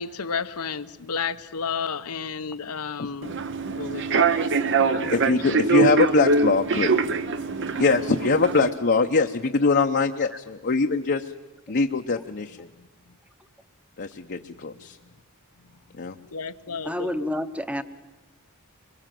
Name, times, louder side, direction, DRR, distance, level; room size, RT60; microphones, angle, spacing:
voice 1, 0.0-3.4 3.7-5.6 12.8-12.9 15.0-15.1 16.3-17.1, left 5 dB, 85° left, 10 dB, 0.9 m, -32 dB
Human voice / Subway metro underground, 3.2-8.7, right 4 dB, 55° right, 1.0 m, -23 dB
voice 2, 5.1-6.9 7.8-11.3 11.7-12.7 14.0-15.0 16.0-16.2, left 4 dB, 50° left, 4 dB, 0.8 m, -23 dB
voice 3, 16.8-17.8, left 1 dB, 5° right, 11 dB, 0.9 m, -29 dB
23.0 x 22.5 x 7.6 m, 1.1 s
head